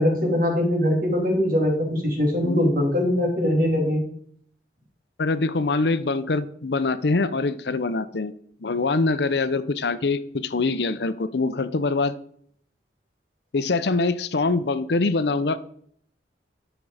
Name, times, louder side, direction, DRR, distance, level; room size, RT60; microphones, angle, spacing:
voice 1, 0.0-4.0, left 1 dB, 55° right, 0 dB, 3.3 m, -22 dB
voice 2, 5.2-8.3 8.6-12.1 13.5-15.6, left 3 dB, 70° left, 13 dB, 0.7 m, -24 dB
12.0 x 6.1 x 4.9 m, 0.63 s
head